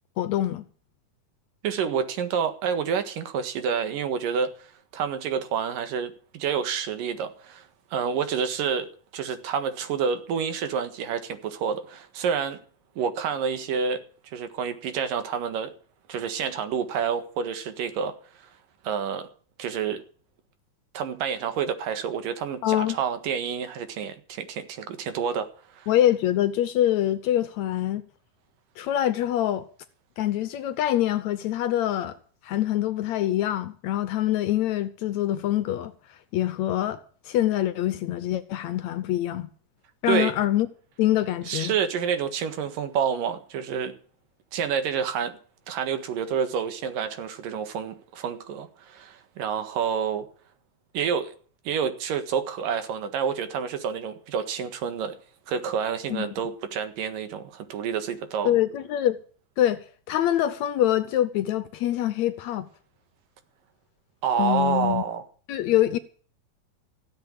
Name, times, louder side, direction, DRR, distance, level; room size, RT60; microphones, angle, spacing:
voice 1, 0.2-0.7 22.6-23.0 25.9-28.0 28.8-29.7 30.2-32.2 32.4-35.9 36.3-37.0 37.3-39.5 40.0-40.7 41.0-41.7 56.1-56.3 58.5-59.2 59.6-62.7 64.4-65.0 65.5-66.0, left 12 dB, 70° left, 1.9 m, -25 dB
voice 2, 1.6-8.9 9.1-12.6 13.0-14.0 14.3-15.7 16.1-18.5 18.8-19.3 19.6-20.0 20.9-25.9 40.1-40.3 41.5-43.9 44.5-45.4 45.7-50.3 50.9-51.3 51.6-55.2 55.5-58.6 64.2-65.3, right 7 dB, 90° right, 3.3 m, -28 dB
16.5 x 8.0 x 8.6 m
omnidirectional pair, 3.8 m